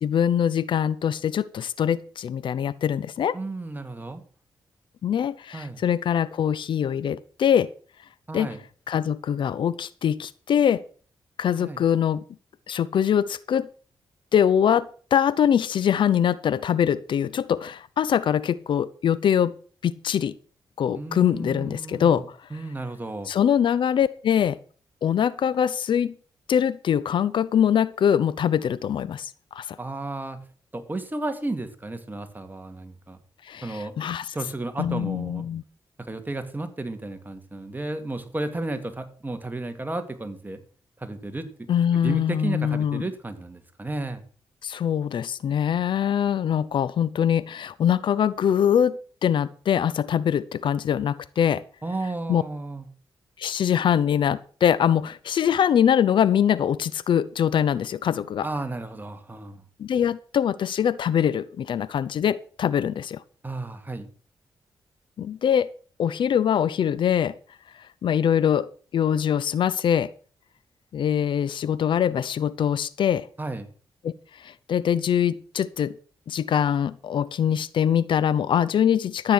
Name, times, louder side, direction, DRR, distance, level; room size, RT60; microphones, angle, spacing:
voice 1, 0.0-3.4 5.0-7.7 8.3-8.5 8.9-10.8 11.4-12.2 12.7-13.7 14.3-19.5 19.8-20.3 20.8-22.4 23.3-24.6 25.0-26.1 26.5-29.8 33.5-34.3 34.8-35.6 41.7-43.1 44.6-51.6 52.3-52.4 53.4-58.5 59.8-63.2 65.2-65.7 66.0-67.4 68.0-70.1 70.9-73.3 74.0-74.1 74.4-76.0 76.3-79.3, left 9 dB, 75° left, 0.7 m, -23 dB
voice 2, 3.3-4.2 5.5-5.8 8.3-8.6 11.6-11.8 20.9-22.2 22.5-23.3 29.8-30.4 30.7-33.2 33.6-33.9 34.3-35.4 36.0-40.6 41.0-41.5 41.9-44.2 51.8-52.9 58.4-59.6 63.4-64.1 73.4-73.7, right 2 dB, 20° right, 2.5 m, -33 dB
13.5 x 8.8 x 6.3 m
cardioid pair, 65°, 8 cm